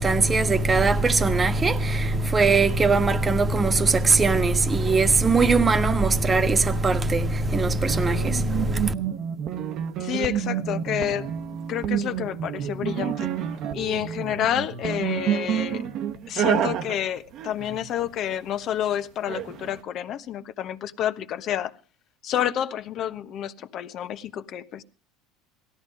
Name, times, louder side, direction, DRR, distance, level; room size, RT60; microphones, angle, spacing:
voice 1, 0.0-8.9, right 3 dB, 20° right, 1.4 m, -21 dB
sound 1, 7.9-18.4 19.3-19.8, right 9 dB, 50° right, 1.2 m, -29 dB
voice 2, 10.0-13.3 13.7-15.9 16.3-21.7 22.2-24.8, left 10 dB, 50° left, 1.2 m, -29 dB
17.5 x 13.5 x 4.9 m
supercardioid pair, 115°, 0 cm